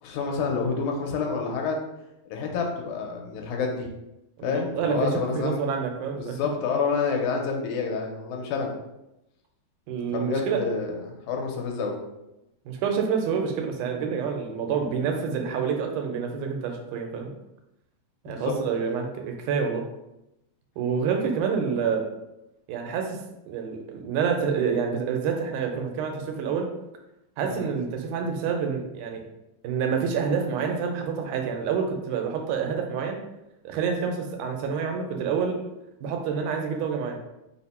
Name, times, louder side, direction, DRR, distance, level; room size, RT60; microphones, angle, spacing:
voice 1, 0.0-1.8 2.3-3.9 4.4-5.7 6.2-8.7 10.1-12.0 18.3-18.5 27.5-27.7, left 5 dB, 80° left, 1 dB, 2.1 m, -28 dB
voice 2, 4.4-6.4 9.9-10.6 12.7-17.3 18.2-19.8 20.8-22.0 22.7-23.2 23.5-26.7 27.4-29.2 29.6-33.2 33.6-35.6 36.0-37.2, right 6 dB, 90° right, 3 dB, 2.2 m, -27 dB
4.9 x 2.1 x 4.1 m, 0.91 s
omnidirectional pair, 3.4 m